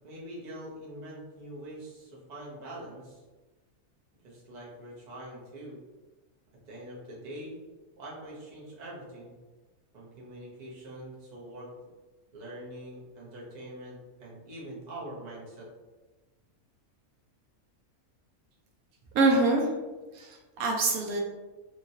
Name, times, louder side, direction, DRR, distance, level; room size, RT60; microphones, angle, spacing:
voice 1, 0.0-3.2 4.2-5.8 6.7-7.6 8.0-9.3 9.9-11.7 12.3-15.7, right 1 dB, 35° right, -5 dB, 0.8 m, -44 dB
voice 2, 19.1-19.7 20.1-21.2, right 3 dB, 75° right, 0 dB, 1.0 m, -25 dB
2.9 x 2.8 x 2.7 m, 1.2 s
omnidirectional pair, 1.5 m